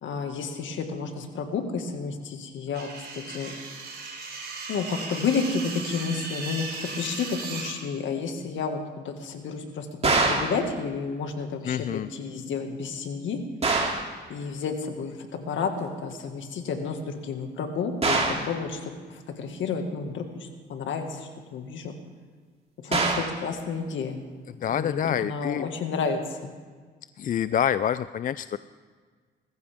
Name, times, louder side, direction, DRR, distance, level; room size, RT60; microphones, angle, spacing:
voice 1, 0.0-2.9 3.3-3.5 4.7-6.7 7.0-13.4 14.3-21.9 22.8-24.2 24.7-26.5, left 5 dB, 75° left, 5 dB, 2.0 m, -31 dB
sound 1, 2.7-7.7, right 3 dB, 55° right, 3.9 m, -37 dB
sound 2, 10.0-10.6 13.6-14.1 18.0-18.5 22.9-23.4, right 3 dB, 30° right, 2.9 m, -24 dB
voice 2, 11.6-12.1 22.9-23.0 24.6-25.7 27.2-28.6, left 9 dB, 45° left, 14 dB, 0.4 m, -27 dB
20.0 x 15.0 x 3.6 m, 1.5 s
cardioid pair, 90°, 20 cm